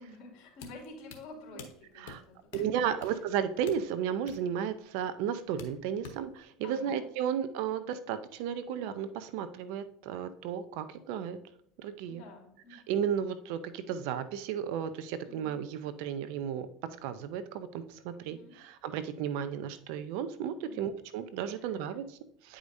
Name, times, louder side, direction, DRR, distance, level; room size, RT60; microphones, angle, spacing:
voice 1, 0.0-2.6 3.0-3.1 6.6-7.0 7.3-7.5 12.1-13.0 15.3-15.6 18.2-18.5 20.6-20.8 21.6-21.9, left 2 dB, 55° left, -1 dB, 2.4 m, -50 dB
sound 1, 0.5-6.4, left 6 dB, 80° left, 1.1 m, -51 dB
voice 2, 2.5-11.4 11.8-12.2 12.7-16.7 17.0-22.6, right 8 dB, 70° right, 12 dB, 0.6 m, -34 dB
9.4 x 4.9 x 2.7 m, 0.68 s
supercardioid pair, 120°, 0 cm